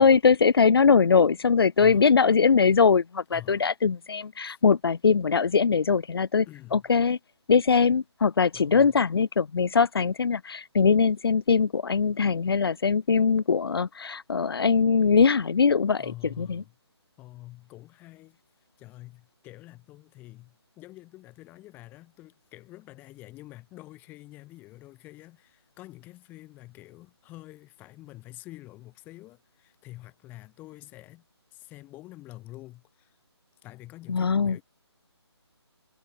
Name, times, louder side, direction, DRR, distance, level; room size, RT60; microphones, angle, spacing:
voice 1, 0.0-6.4 6.7-7.2 7.5-16.1 16.4-16.6 34.1-34.6, left 5 dB, 60° left, 1.3 m, -21 dB
voice 2, 1.8-2.1 3.3-3.6 4.4-4.6 6.5-6.9 8.5-9.0 16.0-16.8 17.2-18.4 18.8-31.2 31.5-33.2 33.6-34.6, left 17 dB, 10° left, 4.3 m, -47 dB
hypercardioid pair, 165°, 14 cm